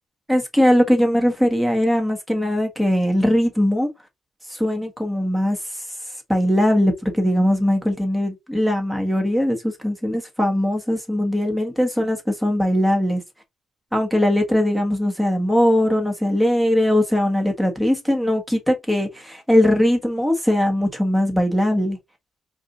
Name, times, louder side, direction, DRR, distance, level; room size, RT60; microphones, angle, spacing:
voice 1, 0.3-3.9 4.5-5.6 6.3-13.2 13.9-22.0, equal, 5° right, 1.4 m, -20 dB
4.8 x 2.5 x 2.6 m
cardioid pair, 90°, 0 cm